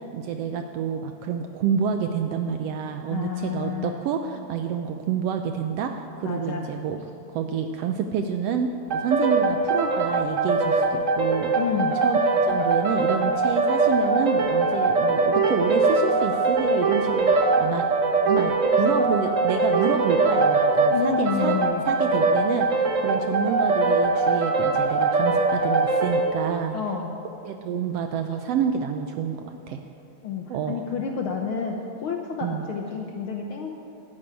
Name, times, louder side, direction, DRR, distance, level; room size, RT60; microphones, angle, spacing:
voice 1, 0.1-7.0 7.3-11.5 12.0-17.8 18.2-21.6 21.8-26.7 27.4-29.8 30.5-30.8 32.4-32.6, right 7 dB, 75° right, 6 dB, 1.5 m, -28 dB
voice 2, 3.1-4.0 6.2-6.7 11.5-12.0 20.9-21.8 26.7-27.2 30.2-33.7, left 6 dB, 70° left, 2 dB, 1.3 m, -29 dB
sound 1, 8.9-26.3, right 3 dB, 55° right, 0.8 m, -22 dB
12.5 x 10.5 x 9.0 m, 2.8 s
omnidirectional pair, 3.4 m